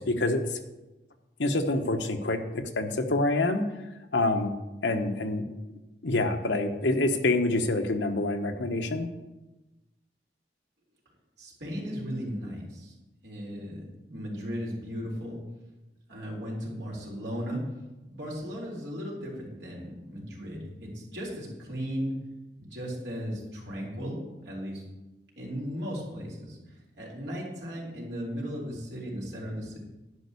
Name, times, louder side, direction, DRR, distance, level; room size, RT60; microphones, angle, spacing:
voice 1, 0.1-0.4 1.4-3.6 4.1-4.5 4.8-5.4 6.0-9.1, left 2 dB, 85° left, 5 dB, 1.1 m, -26 dB
voice 2, 11.4-12.9 13.2-15.4 16.1-17.6 18.1-22.1 22.6-24.2 24.4-24.8 25.4-29.8, equal, 80° right, -3 dB, 3.9 m, -36 dB
11.0 x 5.5 x 8.3 m, 1.1 s
head